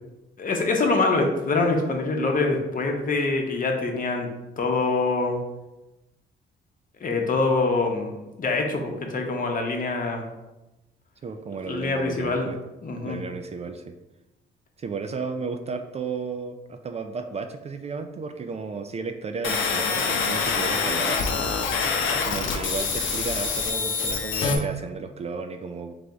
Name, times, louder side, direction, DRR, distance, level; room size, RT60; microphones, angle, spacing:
voice 1, 0.4-4.3 4.6-5.4 7.0-8.1 8.4-10.2 11.7-12.5 12.8-13.2, left 3 dB, 45° left, 2 dB, 0.9 m, -24 dB
voice 2, 11.2-12.6 13.0-14.0 14.8-21.2 22.2-25.9, right 4 dB, 35° right, 6 dB, 0.4 m, -33 dB
sound 1, 19.4-24.6, left 5 dB, 75° left, 0.7 m, -25 dB
3.5 x 3.3 x 3.9 m, 1.0 s
cardioid pair, 90°, 20 cm